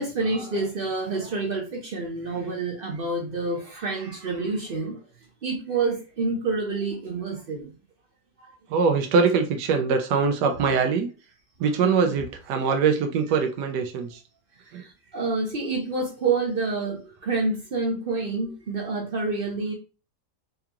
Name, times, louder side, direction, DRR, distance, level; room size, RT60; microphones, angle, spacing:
voice 1, 0.0-5.0 5.4-7.7 11.8-12.1 15.1-19.7, right 3 dB, 55° right, 0.6 m, -28 dB
voice 2, 8.7-11.1 11.6-14.2 14.7-14.8, right 5 dB, 90° right, 1.2 m, -23 dB
4.6 x 2.4 x 2.9 m
omnidirectional pair, 1.8 m